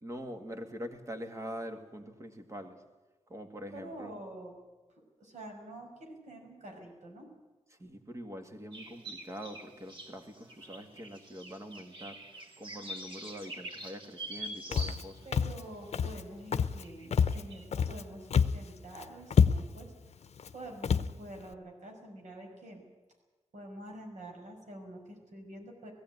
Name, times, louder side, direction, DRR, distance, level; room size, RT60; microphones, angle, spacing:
voice 1, 0.0-2.8 3.3-4.1 7.7-12.2 12.6-15.3, equal, 25° right, 6 dB, 2.1 m, -44 dB
voice 2, 3.7-4.5 5.2-7.3 15.2-19.9 20.5-22.8 23.5-25.9, right 1 dB, 90° right, 2 dB, 5.8 m, -47 dB
sound 1, 8.7-15.4 15.8-15.9 16.8-17.1 17.3-17.6, right 1 dB, 45° right, 3.7 m, -45 dB
Walk footsteps, 14.7-15.0 15.3-15.6 15.9-16.2 16.5-16.8 17.1-18.0 18.3-18.7 19.0-19.1 19.3-19.8 20.4-20.5 20.8-21.1, left 6 dB, 65° left, 0.7 m, -27 dB
19.0 x 15.5 x 9.4 m, 1.2 s
wide cardioid pair, 170°, 12 cm